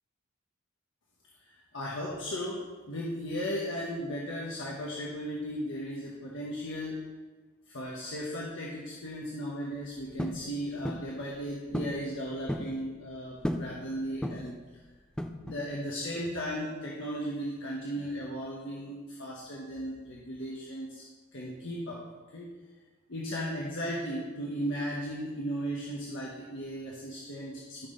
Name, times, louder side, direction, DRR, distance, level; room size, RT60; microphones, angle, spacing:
voice 1, 1.5-7.0 7.7-14.8 15.4-21.0 21.3-22.0 22.3-22.5 23.1-27.9, equal, 65° left, -4 dB, 1.4 m, -36 dB
sound 1, 10.2-10.4 10.8-11.1 11.7-12.0 12.3-12.7 13.4-13.7 14.2-14.6 15.2-15.6, equal, 5° left, 0.5 m, -33 dB
13.0 x 6.3 x 4.0 m, 1.3 s
head